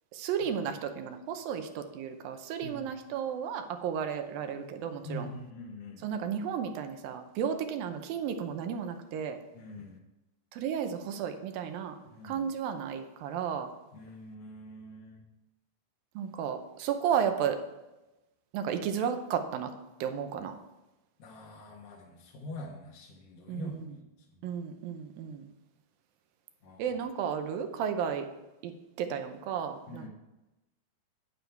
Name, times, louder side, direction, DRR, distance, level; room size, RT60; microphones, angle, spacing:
voice 1, 0.1-5.3 6.0-9.4 10.5-12.0 12.2-13.7 16.2-17.6 18.5-19.7 20.0-20.6 23.5-23.9 24.4-25.5 26.8-28.3 28.6-28.7 29.0-30.1, right 8 dB, 75° right, 7 dB, 2.5 m, -33 dB
voice 2, 5.0-6.1 9.5-10.0 12.0-12.5 13.9-15.2 21.2-24.1 26.6-26.9 29.9-30.1, left 1 dB, 55° left, -3 dB, 2.0 m, -44 dB
9.5 x 9.3 x 4.6 m, 0.99 s
omnidirectional pair, 4.2 m